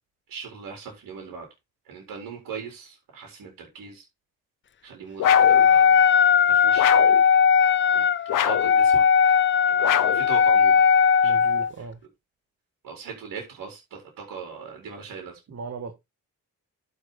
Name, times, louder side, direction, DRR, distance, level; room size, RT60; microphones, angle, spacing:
voice 1, 0.3-1.5 1.9-4.0 4.8-6.0 6.5-6.9 7.9-9.0 9.7-10.8 11.2-11.4 12.8-15.4, right 6 dB, 80° right, 2 dB, 4.3 m, -39 dB
sound 1, 5.2-5.7 6.8-7.2 8.3-8.8 9.8-10.3, left 11 dB, 70° left, 1.0 m, -25 dB
Wind instrument woodwind instrument, 5.2-11.7, left 7 dB, 35° left, 0.6 m, -18 dB
voice 2, 11.2-12.0 15.5-15.9, right 4 dB, 50° right, 6 dB, 1.8 m, -37 dB
12.0 x 5.4 x 4.2 m, 0.22 s
cardioid pair, 85°, 33 cm